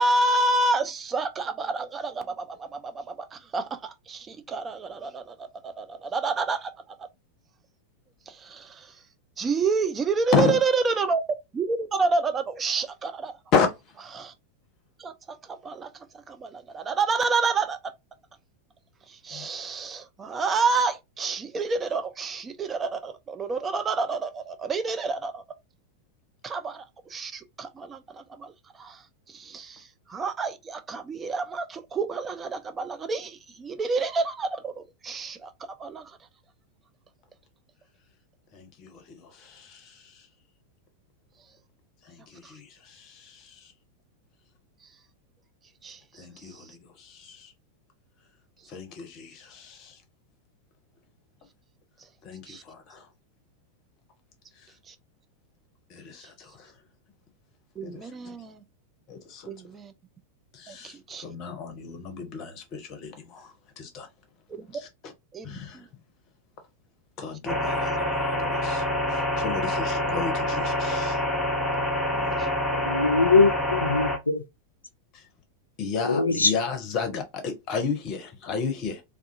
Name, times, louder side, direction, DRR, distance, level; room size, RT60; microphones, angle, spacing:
voice 1, 0.0-6.7 8.3-8.9 9.4-11.2 11.5-13.3 14.1-14.3 15.0-15.1 15.5-15.9 16.3-17.9 19.2-25.4 26.4-26.8 27.1-28.5 28.8-29.0 29.3-35.5 35.8-36.0 45.8-46.0 52.5-52.6 54.9-55.0 57.8-58.6 59.5-59.9 60.7-61.3 64.5-64.8 65.3-65.8, right 3 dB, 20° right, 0.3 m, -29 dB
voice 2, 38.5-40.3 42.0-43.7 46.1-47.5 48.7-50.0 52.2-53.1 54.6-54.7 55.9-56.7 57.8-58.3 59.1-59.5 60.5-64.1 64.7-64.9 65.4-65.9 67.2-71.2 75.1-75.3 75.8-79.0, left 5 dB, 35° left, 0.7 m, -32 dB
sound 1, 67.5-74.2, left 1 dB, ahead, 0.8 m, -26 dB
voice 3, 72.7-74.4 76.0-76.5, left 4 dB, 80° left, 0.4 m, -22 dB
2.4 x 2.3 x 2.5 m
figure-of-eight pair, 90°, 0 cm